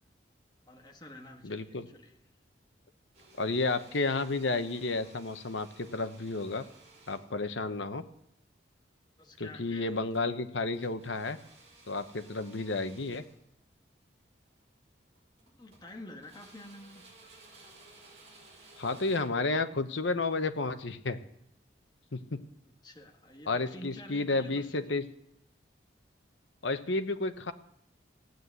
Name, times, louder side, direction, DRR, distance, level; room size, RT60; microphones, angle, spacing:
voice 1, 0.7-2.2 9.2-10.2 15.4-17.1 22.8-25.0, left 1 dB, 20° left, 2 dB, 1.7 m, -49 dB
voice 2, 1.4-1.9 3.4-6.7 7.1-8.0 9.4-11.4 11.9-13.2 18.8-21.2 22.1-22.4 23.5-25.0 26.6-27.5, left 3 dB, 80° left, 10 dB, 1.0 m, -31 dB
sound 1, 3.1-7.5 9.8-10.3 10.7-13.4 14.5-14.6 15.1-16.0 16.2-19.2, right 2 dB, 35° right, 5.4 m, -57 dB
15.5 x 9.4 x 8.2 m, 0.77 s
head